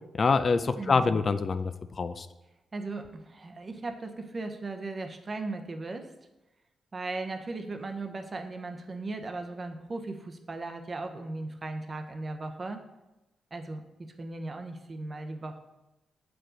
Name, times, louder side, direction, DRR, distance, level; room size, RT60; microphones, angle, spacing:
voice 1, 0.1-2.3, left 4 dB, 45° left, 11 dB, 0.3 m, -26 dB
voice 2, 0.8-1.2 2.7-6.1 6.9-12.8 13.5-15.6, right 2 dB, 40° right, 6 dB, 0.7 m, -37 dB
6.5 x 4.7 x 3.8 m, 0.99 s
cardioid pair, 75°, 0 cm